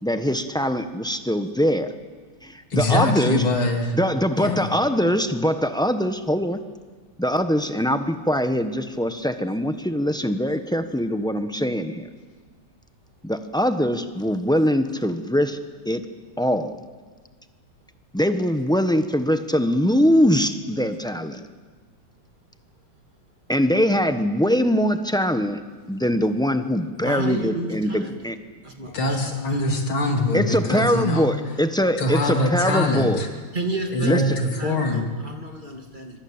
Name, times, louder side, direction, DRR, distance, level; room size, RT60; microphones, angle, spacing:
voice 1, 0.0-1.9 2.4-3.4 3.9-6.6 7.2-12.1 13.2-15.6 15.8-16.0 16.4-16.8 18.1-21.4 23.5-25.6 25.9-28.4 30.3-33.2 34.0-34.2, equal, 5° left, 8 dB, 0.7 m, -22 dB
voice 2, 2.7-4.0 4.4-4.7 28.9-31.3 32.0-33.3 33.9-35.1, left 1 dB, 90° left, 3 dB, 3.6 m, -23 dB
voice 3, 27.0-28.2 28.6-29.6 33.5-36.2, right 2 dB, 25° right, 3 dB, 2.7 m, -32 dB
25.5 x 23.5 x 8.9 m, 1.5 s
omnidirectional pair, 2.2 m